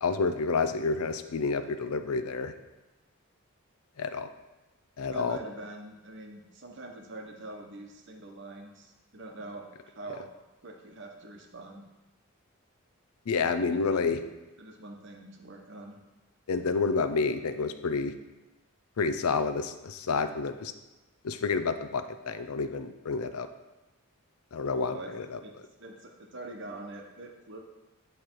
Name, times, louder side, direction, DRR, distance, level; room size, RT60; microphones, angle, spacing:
voice 1, 0.0-2.5 4.0-4.3 5.0-5.4 13.3-14.2 16.5-18.1 19.0-20.7 21.2-23.5 24.5-25.4, left 4 dB, 85° left, 10 dB, 0.5 m, -29 dB
voice 2, 5.1-10.3 10.6-11.8 13.7-13.8 14.6-16.0 24.9-25.1 25.4-27.6, right 2 dB, 55° right, 2 dB, 0.9 m, -44 dB
9.6 x 3.3 x 4.5 m, 1.1 s
head